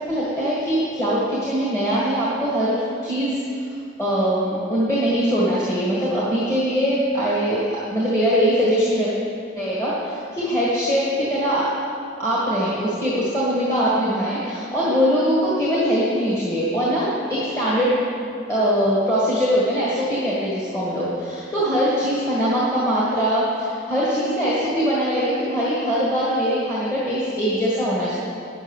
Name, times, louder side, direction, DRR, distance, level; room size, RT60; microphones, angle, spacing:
voice 1, 0.1-3.6 4.0-9.1 9.5-11.7 12.2-18.0 18.5-28.1, equal, 15° left, -9 dB, 1.8 m, -22 dB
10.0 x 7.3 x 7.1 m, 2.5 s
head